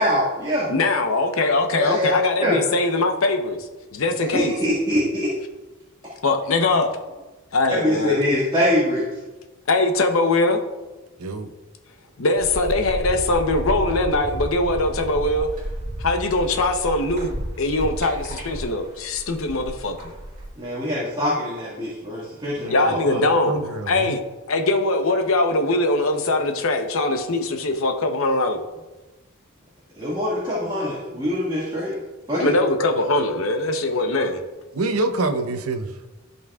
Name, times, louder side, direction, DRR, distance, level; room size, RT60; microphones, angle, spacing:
voice 1, 0.0-0.7 1.8-2.2 2.4-2.6 4.3-5.3 7.7-9.0 20.6-23.2 30.0-32.0 32.3-32.5, left 1 dB, 20° right, -7 dB, 1.8 m, -23 dB
voice 2, 0.7-4.6 6.2-6.9 7.5-8.2 9.7-10.6 12.2-15.5 16.0-20.1 22.7-23.6 23.9-24.2 24.5-28.6 32.4-34.4, left 2 dB, 70° left, 5 dB, 0.8 m, -22 dB
voice 3, 11.2-11.5 22.6-24.2 34.7-35.9, right 2 dB, 85° right, 7 dB, 0.7 m, -27 dB
sound 1, 12.4-20.5, equal, 40° right, 2.5 m, -32 dB
15.0 x 5.4 x 2.4 m, 1.2 s
head